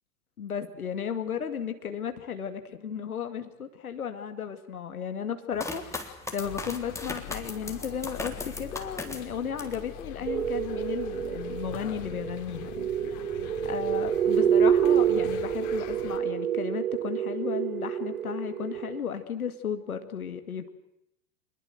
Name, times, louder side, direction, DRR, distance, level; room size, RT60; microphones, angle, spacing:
voice 1, 0.4-13.3 13.6-20.7, left 7 dB, 80° left, 8 dB, 2.3 m, -34 dB
sound 1, 5.6-9.9 10.3-11.0, left 2 dB, 5° left, 3.6 m, -38 dB
sound 2, 6.4-16.2, left 11 dB, 45° left, 3.3 m, -43 dB
sound 3, 10.3-19.0, right 9 dB, 75° right, 1.6 m, -27 dB
26.0 x 21.5 x 7.9 m, 0.81 s
figure-of-eight pair, 90°, 42 cm